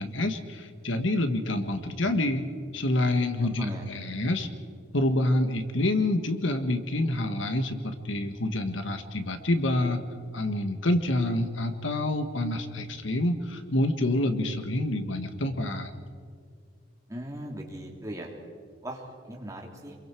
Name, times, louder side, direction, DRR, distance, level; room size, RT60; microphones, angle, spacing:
voice 1, 0.0-2.5 2.7-4.5 4.9-10.0 10.3-15.9, left 1 dB, 75° left, 8 dB, 1.6 m, -27 dB
voice 2, 17.1-18.3 18.8-20.0, right 1 dB, 15° right, 0 dB, 2.8 m, -38 dB
28.0 x 22.0 x 4.6 m, 2.1 s
head